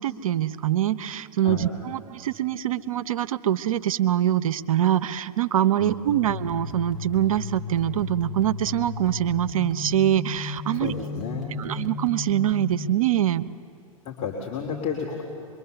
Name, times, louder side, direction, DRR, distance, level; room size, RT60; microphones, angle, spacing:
voice 1, 0.0-10.9 11.6-13.4, right 11 dB, 75° right, 13 dB, 0.7 m, -24 dB
voice 2, 5.8-6.1 10.8-11.5 14.0-15.2, left 6 dB, 35° left, -2 dB, 3.1 m, -32 dB
sound 1, 6.1-12.9, left 4 dB, 5° right, 2.6 m, -34 dB
24.5 x 23.0 x 6.9 m, 2.9 s
hypercardioid pair, 105°, 18 cm